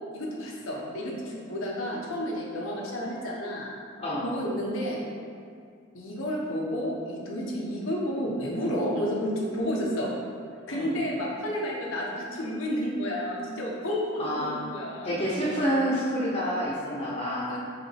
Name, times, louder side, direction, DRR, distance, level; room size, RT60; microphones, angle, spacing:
voice 1, 0.1-3.7 4.2-5.0 5.9-10.1 10.7-14.3 14.7-15.2 17.5-17.6, equal, 90° left, -3 dB, 0.9 m, -31 dB
voice 2, 4.0-4.3 10.7-11.0 14.2-14.6 15.0-17.6, equal, 30° left, -9 dB, 0.7 m, -28 dB
4.9 x 3.2 x 3.4 m, 2.2 s
head